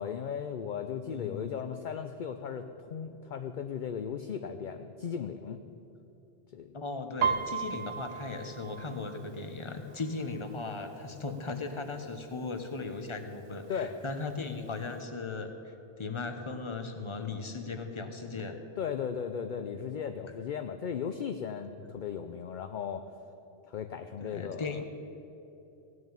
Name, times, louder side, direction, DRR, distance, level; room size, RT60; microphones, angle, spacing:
voice 1, 0.0-5.6 6.5-6.7 13.7-13.9 18.8-23.0 23.7-24.8, left 7 dB, 55° left, 8 dB, 0.6 m, -36 dB
voice 2, 1.1-1.5 6.7-18.6 20.0-20.1 24.2-24.8, left 3 dB, 30° left, 6 dB, 1.0 m, -37 dB
Piano, 7.2-10.9 11.2-11.6 12.0-12.6 13.2-13.3 13.5-14.5 14.9-15.0, right 7 dB, 80° right, 0.9 m, -35 dB
16.5 x 6.3 x 8.9 m, 2.9 s
omnidirectional pair, 1.2 m